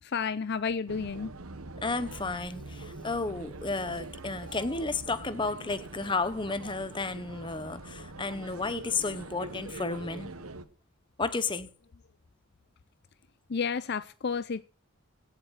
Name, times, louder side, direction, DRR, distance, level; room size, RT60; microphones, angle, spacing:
voice 1, 0.0-1.3 13.5-14.6, left 5 dB, 50° left, 0.5 m, -31 dB
sound 1, 0.9-10.6, right 2 dB, 90° right, 1.2 m, -43 dB
voice 2, 1.8-10.3 11.2-11.7, left 3 dB, 20° left, 0.9 m, -32 dB
15.5 x 7.6 x 6.4 m
head